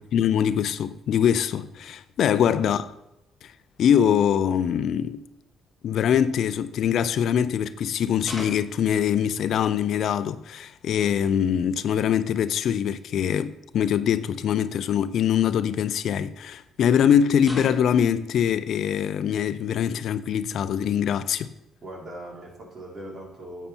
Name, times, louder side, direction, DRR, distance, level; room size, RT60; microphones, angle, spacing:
voice 1, 0.1-2.8 3.4-3.5 3.8-5.2 5.8-21.5, left 9 dB, 70° left, 0.5 m, -23 dB
voice 2, 2.3-2.6 21.8-23.7, right 1 dB, 50° right, 4.2 m, -40 dB
sound 1, 8.2-8.8 10.6-11.4 12.5-12.6 12.8-13.0 14.2-14.3 15.3-16.3 17.4-18.1, left 1 dB, 5° right, 2.8 m, -41 dB
11.0 x 8.2 x 4.4 m
cardioid pair, 90°, 0 cm